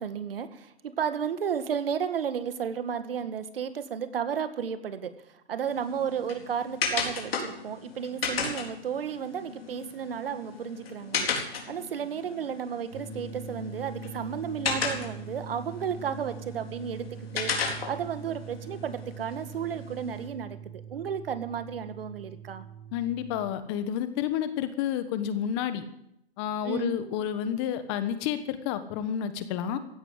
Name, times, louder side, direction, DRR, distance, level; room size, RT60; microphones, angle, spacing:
voice 1, 0.0-17.0 17.3-22.7 26.6-27.0, right 7 dB, 65° right, 11 dB, 1.9 m, -33 dB
sound 1, 5.6-20.3, left 5 dB, 70° left, 4.4 m, -36 dB
sound 2, 12.9-23.5, right 6 dB, 40° right, 5.7 m, -43 dB
voice 2, 22.9-25.8 26.4-29.8, left 9 dB, 25° left, 11 dB, 1.2 m, -30 dB
15.5 x 11.0 x 8.1 m, 0.79 s
hypercardioid pair, 150°, 31 cm